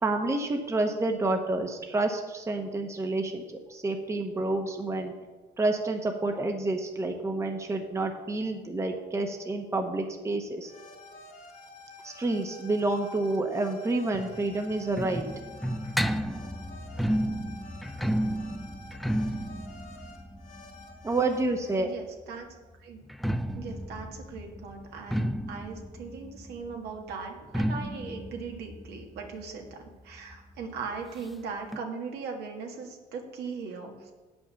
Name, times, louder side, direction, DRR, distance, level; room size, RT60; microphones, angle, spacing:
voice 1, 0.0-5.1 5.6-10.7 12.0-15.3 21.0-21.9, right 2 dB, 15° right, 4 dB, 0.9 m, -29 dB
sound 1, 10.6-21.7, left 2 dB, 50° left, 1.9 m, -50 dB
sound 2, 14.1-21.8 23.0-30.3 30.6-30.7 30.9-31.0 31.7-31.8, equal, ahead, 0.3 m, -32 dB
voice 2, 21.7-22.5 22.8-23.0 23.5-29.8 30.0-34.1, right 5 dB, 75° right, 2 dB, 1.6 m, -39 dB
8.5 x 5.3 x 7.0 m, 1.2 s
cardioid pair, 110°, 17 cm